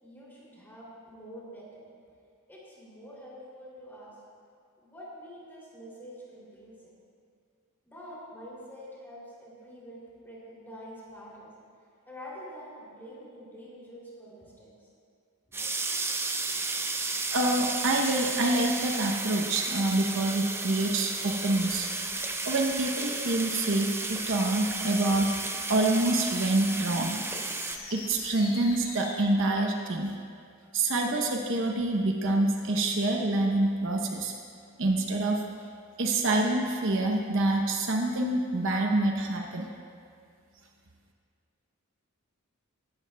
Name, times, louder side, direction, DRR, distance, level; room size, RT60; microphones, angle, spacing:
voice 1, 0.0-1.8 2.5-4.1 4.8-6.7 7.9-11.5 12.1-14.7, equal, 10° left, -6 dB, 2.7 m, -46 dB
sound 1, 15.5-27.8, right 3 dB, 10° right, 0.4 m, -33 dB
voice 2, 17.3-21.9 22.4-25.4 25.7-27.2 27.9-30.1 30.7-34.3 34.8-35.4 36.0-39.7, right 2 dB, 60° right, 2 dB, 0.8 m, -26 dB
sound 2, 21.2-29.2, left 5 dB, 80° left, 2.1 m, -44 dB
16.0 x 11.5 x 2.2 m, 2.3 s
head